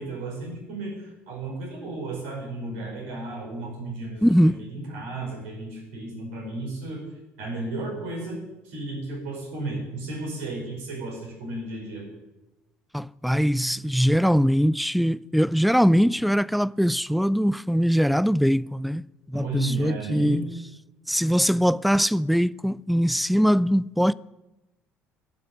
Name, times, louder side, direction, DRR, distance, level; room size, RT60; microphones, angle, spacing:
voice 1, 0.0-7.1 7.4-12.0 19.3-20.5, right 2 dB, 75° right, 5.2 m, -33 dB
voice 2, 4.2-4.6 12.9-20.4 21.1-24.1, equal, ahead, 0.4 m, -22 dB
12.0 x 6.6 x 9.6 m
hypercardioid pair, 55°, 7 cm